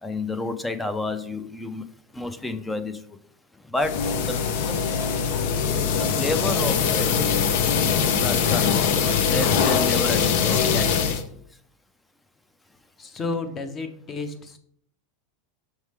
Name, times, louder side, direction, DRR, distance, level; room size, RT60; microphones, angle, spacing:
voice 1, 0.0-1.8 2.1-3.2 3.5-4.8 5.9-7.1 8.2-8.7 9.2-11.2, left 2 dB, 5° left, 10 dB, 0.5 m, -31 dB
sound 1, 3.8-11.2, left 6 dB, 60° left, 0.7 m, -22 dB
voice 2, 13.0-14.6, left 3 dB, 20° left, 8 dB, 0.8 m, -31 dB
6.4 x 4.7 x 3.6 m, 0.64 s
supercardioid pair, 155°, 0 cm